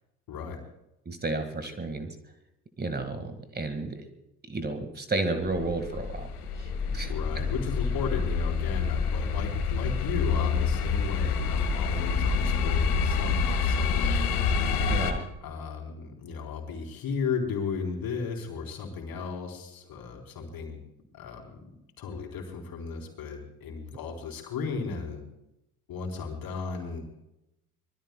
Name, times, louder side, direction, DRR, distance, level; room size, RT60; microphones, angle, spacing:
voice 1, 0.3-0.6 7.1-14.4 15.4-20.8 21.1-21.7 22.0-25.2 25.9-27.0, left 5 dB, 50° left, 2 dB, 4.1 m, -35 dB
voice 2, 1.1-2.2 2.8-4.1 4.5-6.3 6.6-7.1 14.9-15.3, right 2 dB, 20° right, 8 dB, 2.0 m, -32 dB
sound 1, 5.4-15.1, left 5 dB, 75° left, 1.9 m, -27 dB
25.0 x 21.0 x 2.3 m, 0.88 s
figure-of-eight pair, 55°, 45 cm